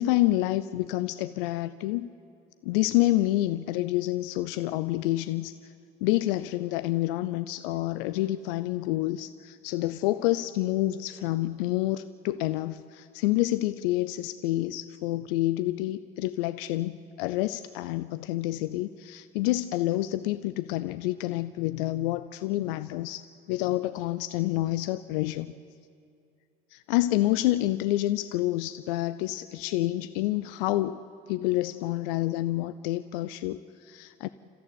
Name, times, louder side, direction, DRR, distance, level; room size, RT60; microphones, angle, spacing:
voice 1, 0.0-2.1 2.6-5.7 6.0-23.2 23.5-25.5 26.7-31.0 31.3-34.3, left 16 dB, 60° left, 13 dB, 0.6 m, -28 dB
29.5 x 14.0 x 8.2 m, 2.4 s
figure-of-eight pair, 60°, 32 cm